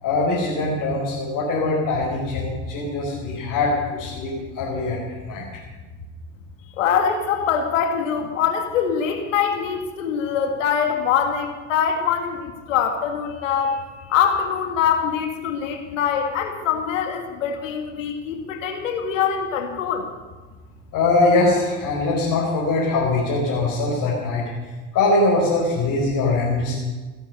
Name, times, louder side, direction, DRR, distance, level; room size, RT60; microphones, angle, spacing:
voice 1, 0.0-5.4 20.9-24.4 24.9-26.7, left 2 dB, 60° left, -5 dB, 5.1 m, -22 dB
voice 2, 6.8-20.0, left 7 dB, 85° left, 5 dB, 1.9 m, -23 dB
17.5 x 11.5 x 6.9 m, 1.3 s
hypercardioid pair, 65°, 37 cm